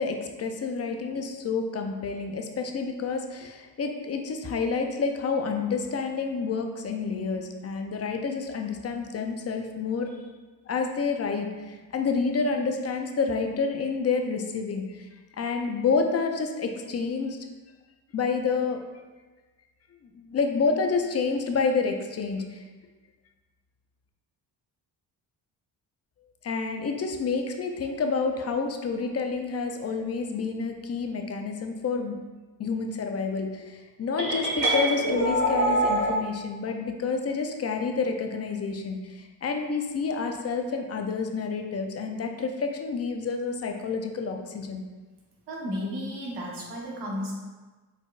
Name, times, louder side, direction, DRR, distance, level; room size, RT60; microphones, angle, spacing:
voice 1, 0.0-10.2 10.7-15.1 15.4-17.4 18.1-18.8 20.0-22.7 26.4-32.2 32.6-44.8, left 4 dB, 40° left, 4 dB, 0.5 m, -29 dB
sound 1, 34.2-36.2, right 1 dB, 45° right, 1.4 m, -24 dB
voice 2, 45.5-47.3, equal, 90° right, -3 dB, 1.2 m, -33 dB
5.1 x 4.2 x 2.4 m, 1.3 s
cardioid pair, 110°, 39 cm